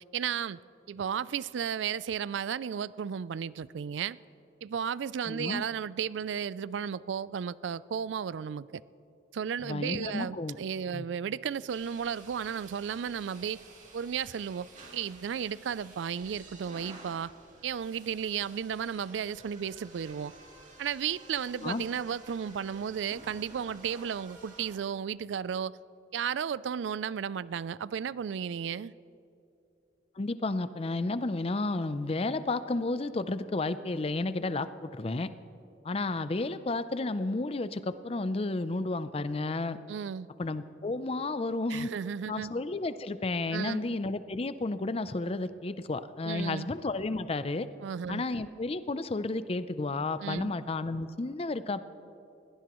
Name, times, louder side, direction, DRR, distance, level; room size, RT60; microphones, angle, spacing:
voice 1, 0.1-0.6 0.9-4.2 4.6-8.8 9.3-13.6 13.9-17.3 17.6-20.3 20.8-25.8 26.1-28.9 39.9-40.3 41.7-42.5 43.5-43.8 46.2-46.7 47.8-48.3 50.2-50.5, right 7 dB, 85° right, 0.4 m, -34 dB
voice 2, 5.3-5.6 9.6-10.6 10.9-11.1 21.6-21.8 30.2-35.3 35.8-39.8 40.4-41.9 42.3-47.7 48.1-51.8, left 2 dB, 30° left, 0.5 m, -32 dB
sound 1, 11.7-24.8, right 2 dB, 45° right, 2.5 m, -52 dB
21.5 x 17.5 x 3.1 m
head